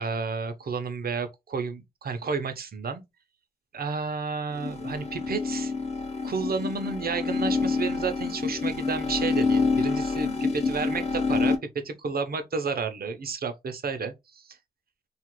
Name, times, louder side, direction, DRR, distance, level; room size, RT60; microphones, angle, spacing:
voice 1, 0.0-3.0 3.7-5.7 6.2-14.5, right 5 dB, 70° right, 0.7 m, -31 dB
sound 1, 4.5-11.6, left 4 dB, 40° left, 0.7 m, -27 dB
2.8 x 2.4 x 3.0 m
wide cardioid pair, 90°, 16 cm